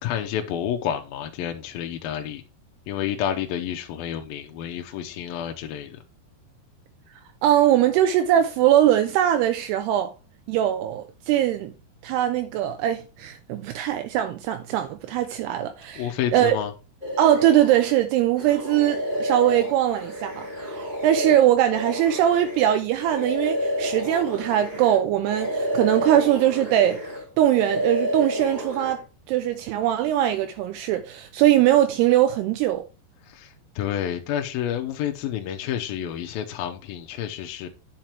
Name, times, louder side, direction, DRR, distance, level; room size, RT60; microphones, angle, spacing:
voice 1, 0.0-2.4 2.9-6.0 16.0-16.7 33.2-37.7, left 10 dB, 75° left, 2.3 m, -29 dB
voice 2, 7.4-10.1 10.5-11.7 12.0-16.1 16.3-16.6 17.2-27.0 27.4-32.8, right 12 dB, 80° right, 2.6 m, -21 dB
sound 1, 17.0-18.0 18.4-25.0 25.2-27.2 27.5-28.9, equal, 15° right, 1.9 m, -29 dB
9.0 x 5.8 x 4.5 m
omnidirectional pair, 4.9 m